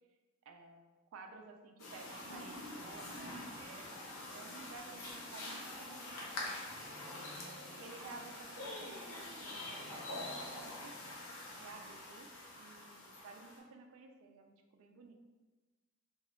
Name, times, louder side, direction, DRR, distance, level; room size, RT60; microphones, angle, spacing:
voice 1, 0.5-0.8 1.1-4.0 4.3-6.6 7.4-11.0 11.6-12.3 12.6-15.1, right 4 dB, 75° right, 4 dB, 0.3 m, -54 dB
sound 1, 1.8-13.6, left 1 dB, 75° left, 0.6 m, -46 dB
sound 2, 6.6-8.8 9.5-11.7, equal, 20° right, 0.5 m, -58 dB
2.8 x 2.3 x 3.0 m, 1.2 s
head